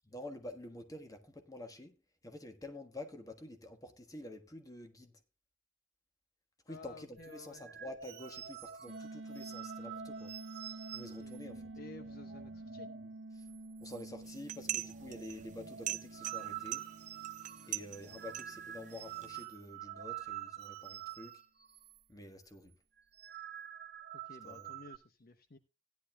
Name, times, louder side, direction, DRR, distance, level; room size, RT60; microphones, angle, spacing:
voice 1, 0.0-2.0 2.2-5.2 6.7-10.4 10.9-11.7 13.4-13.5 13.8-16.9 17.7-21.4 22.1-22.7 24.4-24.7, left 1 dB, 20° left, 1.4 m, -48 dB
voice 2, 6.7-7.6 10.9-11.4 11.8-12.9 24.1-25.6, left 3 dB, 50° left, 0.9 m, -53 dB
sound 1, 7.2-13.1 13.4-13.6 13.8-14.4 14.7-22.0 22.3-22.5 23.0-25.0, right 10 dB, 55° right, 1.4 m, -47 dB
sound 2, 8.9-19.6, right 2 dB, 80° right, 1.1 m, -50 dB
sound 3, 14.2-19.4, right 12 dB, 40° right, 0.6 m, -43 dB
16.5 x 10.5 x 2.2 m
head